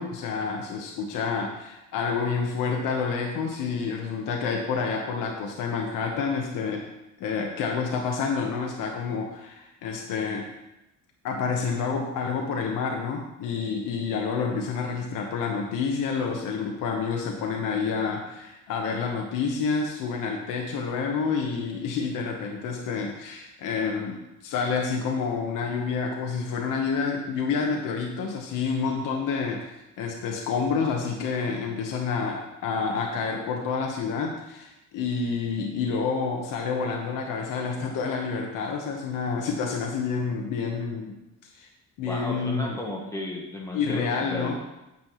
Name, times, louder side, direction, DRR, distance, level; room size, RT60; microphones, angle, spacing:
voice 1, 0.0-6.8 7.2-10.5 11.2-41.2 41.5-41.7 42.0-42.8 43.7-44.5, left 5 dB, 70° left, 1 dB, 1.2 m, -28 dB
voice 2, 42.1-44.5, left 1 dB, 10° left, -1 dB, 1.1 m, -34 dB
9.5 x 7.3 x 3.1 m, 0.94 s
cardioid pair, 145°, 33 cm